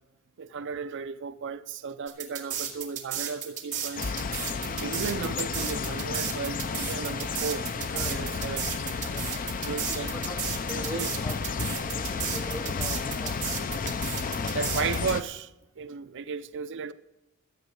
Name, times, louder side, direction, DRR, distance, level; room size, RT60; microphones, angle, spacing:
voice 1, 0.4-4.2 4.6-8.9 9.6-10.1 10.7-11.1 14.5-16.9, right 5 dB, 55° right, 0.5 m, -35 dB
sound 1, 2.1-15.1, right 9 dB, 35° right, 2.7 m, -34 dB
sound 2, 4.0-15.2, left 5 dB, 40° left, 0.5 m, -32 dB
voice 2, 7.9-8.4 9.0-9.5 10.1-11.4 11.9-14.4, equal, 10° left, 0.9 m, -42 dB
13.5 x 8.6 x 6.4 m
head